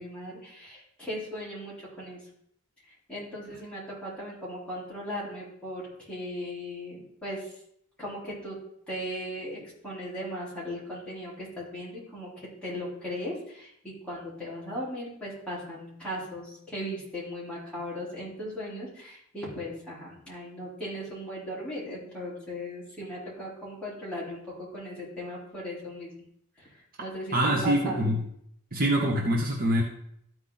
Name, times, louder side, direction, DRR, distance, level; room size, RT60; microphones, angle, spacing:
voice 1, 0.0-2.2 3.1-7.5 8.0-8.6 8.9-26.1 26.6-26.7 27.0-28.1, equal, 5° left, -9 dB, 3.8 m, -37 dB
voice 2, 27.3-28.2 28.7-29.8, right 1 dB, 40° right, 0 dB, 1.1 m, -24 dB
13.0 x 4.7 x 4.0 m, 0.72 s
head